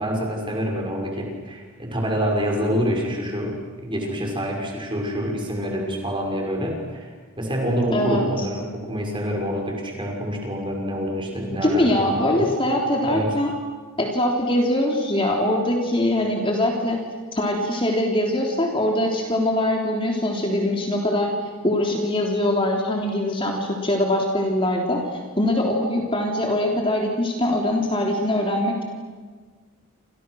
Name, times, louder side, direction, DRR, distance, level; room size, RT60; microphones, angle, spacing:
voice 1, 0.0-12.5 13.0-13.3, equal, 20° right, 1 dB, 6.0 m, -27 dB
voice 2, 7.9-8.4 11.6-13.5 14.0-17.0 17.3-21.3 21.6-28.8, left 1 dB, 25° left, 0 dB, 3.4 m, -22 dB
29.5 x 28.0 x 6.5 m, 1.5 s
head